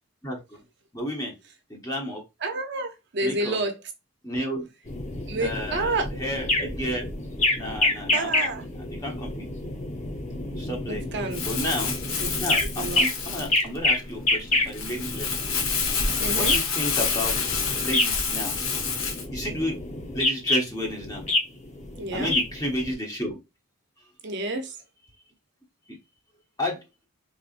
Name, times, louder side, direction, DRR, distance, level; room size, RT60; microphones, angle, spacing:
voice 1, 0.2-0.6 0.9-1.3 1.7-2.2 3.2-3.6 4.2-4.7 5.4-7.1 7.6-9.5 10.6-11.1 11.4-15.4 16.4-17.4 17.8-18.6 19.3-19.8 20.1-21.3 22.1-23.4 26.6-26.8, equal, 15° left, 1.1 m, -32 dB
voice 2, 2.4-3.7 5.3-6.1 8.1-8.6 10.9-11.4 12.2-12.3 12.8-13.1 16.2-16.6 22.0-22.3 24.2-24.7, right 2 dB, 50° right, 0.7 m, -29 dB
sound 1, 4.9-22.9, left 2 dB, 30° left, 0.9 m, -28 dB
Crumpling crinkling, 11.3-19.3, left 5 dB, 65° left, 0.9 m, -28 dB
3.9 x 3.4 x 2.5 m
head